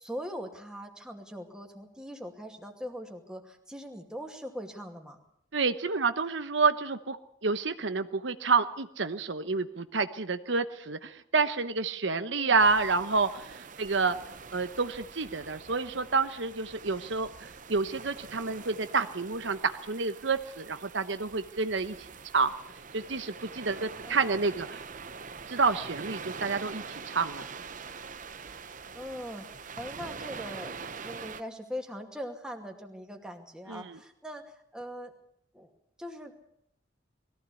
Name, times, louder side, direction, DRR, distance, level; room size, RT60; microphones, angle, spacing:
voice 1, 0.0-5.2 12.4-12.6 24.0-24.4 28.9-35.1 35.5-35.7 36.0-36.3, equal, 5° right, 3 dB, 2.4 m, -41 dB
voice 2, 5.5-7.2 7.4-14.2 14.5-22.0 22.3-22.5 22.9-24.8 25.5-27.4 33.7-34.0, right 4 dB, 75° right, 10 dB, 1.0 m, -29 dB
sound 1, 12.6-31.4, right 5 dB, 45° right, 0.9 m, -44 dB
21.0 x 15.5 x 8.5 m, 0.69 s
head